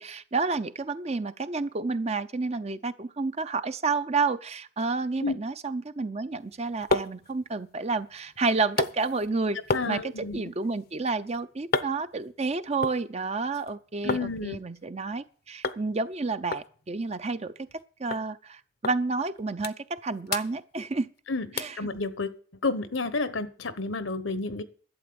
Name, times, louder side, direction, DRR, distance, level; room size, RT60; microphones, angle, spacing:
voice 1, 0.0-17.5 18.0-21.1 21.5-21.8, right 3 dB, 30° right, 0.6 m, -30 dB
sound 1, 6.4-14.3 14.6-15.3 15.6-15.8 16.1-16.2 16.5-17.8 18.1-18.3 18.8-19.0 19.3-20.0 20.3-21.2 21.6-21.8 22.3-22.4, left 3 dB, 50° left, 0.7 m, -34 dB
voice 2, 9.7-10.4 14.0-14.6 21.3-21.5 21.8-22.3 22.6-24.6, left 3 dB, 75° left, 1.1 m, -30 dB
12.0 x 8.3 x 7.0 m
head